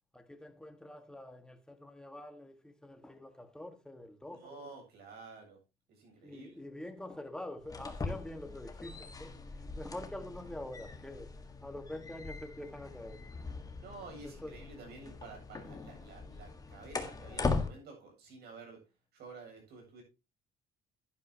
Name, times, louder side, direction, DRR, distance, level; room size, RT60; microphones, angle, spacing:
voice 1, 0.1-4.6 6.2-13.2 14.2-14.5, left 1 dB, 5° left, 1.7 m, -46 dB
voice 2, 4.3-5.6 5.9-6.6 13.8-18.8 19.1-20.0, right 3 dB, 70° right, 7.9 m, -51 dB
sound 1, 7.6-17.7, left 3 dB, 20° left, 1.7 m, -40 dB
11.5 x 11.0 x 2.9 m
cardioid pair, 110°, 17 cm